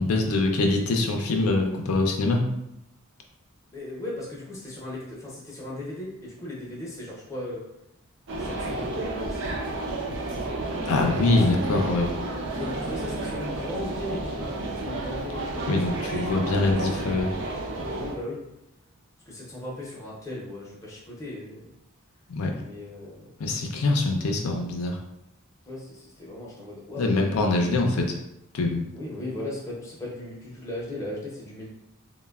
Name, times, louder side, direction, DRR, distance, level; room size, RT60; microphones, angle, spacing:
voice 1, 0.0-2.4 10.9-12.1 15.7-17.3 22.3-22.5 23.4-25.0 27.0-28.1 28.5-28.8, left 2 dB, 80° left, 2 dB, 0.5 m, -24 dB
voice 2, 3.7-7.6 8.4-9.4 11.2-11.7 12.5-16.2 17.9-18.4 19.3-21.7 22.6-23.3 25.6-27.8 28.9-31.7, left 1 dB, 15° left, -5 dB, 0.6 m, -37 dB
sound 1, 8.3-18.2, right 2 dB, 55° right, 0.4 m, -31 dB
3.1 x 2.1 x 2.3 m, 0.86 s
head